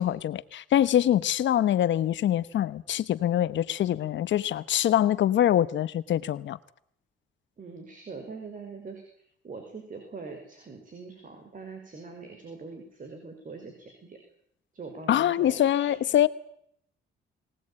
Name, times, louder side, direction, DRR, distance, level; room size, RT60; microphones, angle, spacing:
voice 1, 0.0-6.6 15.1-16.3, left 11 dB, 70° left, 15 dB, 1.1 m, -24 dB
voice 2, 7.6-9.0 9.4-14.2 14.7-15.9, right 4 dB, 40° right, 4 dB, 5.6 m, -42 dB
23.0 x 19.0 x 8.9 m, 0.70 s
cardioid pair, 90°, 20 cm